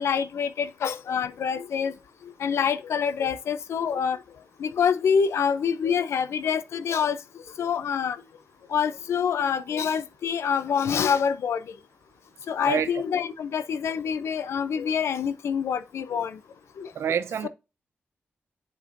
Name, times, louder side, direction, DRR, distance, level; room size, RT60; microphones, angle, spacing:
voice 1, 0.0-1.9 2.4-4.2 4.6-7.2 7.6-8.2 8.7-11.6 12.5-16.4 16.8-16.9 17.4-17.5, left 7 dB, 85° left, 0.5 m, -26 dB
voice 2, 16.9-17.5, right 8 dB, 90° right, 0.6 m, -26 dB
7.8 x 4.7 x 2.6 m
cardioid pair, 75°, 4 cm